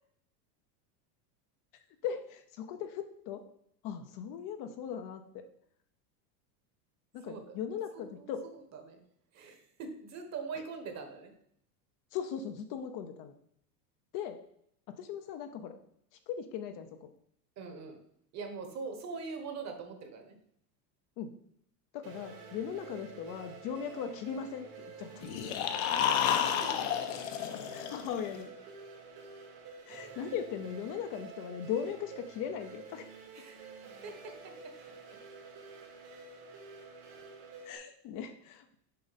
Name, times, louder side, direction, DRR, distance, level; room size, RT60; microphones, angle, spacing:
voice 1, 2.0-3.4 3.8-5.4 7.1-8.5 10.5-10.6 12.1-13.3 14.1-14.4 14.9-15.8 16.3-17.1 21.2-21.3 21.9-25.3 27.7-28.5 29.9-33.1 37.6-38.7, left 8 dB, 45° left, 7 dB, 0.7 m, -38 dB
voice 2, 7.3-7.6 7.9-9.0 9.3-11.3 17.6-18.0 18.3-20.4 25.8-26.1 26.6-27.3 30.3-30.4 33.3-33.6 34.0-34.7, right 4 dB, 35° right, 6 dB, 1.2 m, -43 dB
sound 1, 22.0-37.8, right 5 dB, 80° right, 2.6 m, -50 dB
sound 2, 25.2-28.4, left 9 dB, 60° left, 0.9 m, -31 dB
6.6 x 5.1 x 4.1 m, 0.68 s
supercardioid pair, 145°, 47 cm